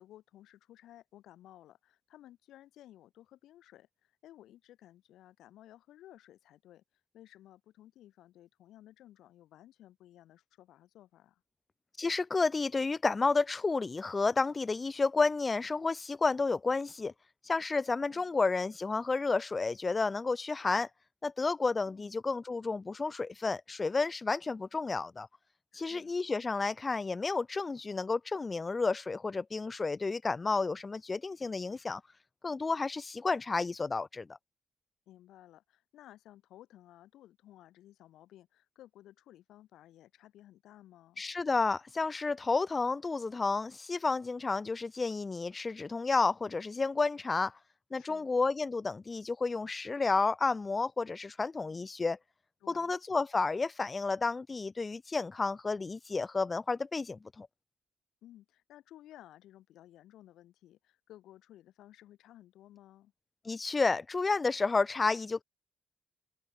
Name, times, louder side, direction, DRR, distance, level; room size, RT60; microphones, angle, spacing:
voice 1, 0.0-6.8 7.1-11.4 17.9-18.2 21.9-22.2 25.7-26.1 35.1-41.2 48.0-48.3 52.6-52.9 58.2-63.1, left 13 dB, 80° left, 3.9 m, -56 dB
voice 2, 12.0-17.1 17.4-20.9 21.2-25.3 25.7-32.0 32.4-34.4 41.2-47.6 47.9-52.2 52.7-57.5 63.4-65.4, left 3 dB, 25° left, 0.6 m, -31 dB
cardioid pair, 90°, 0 cm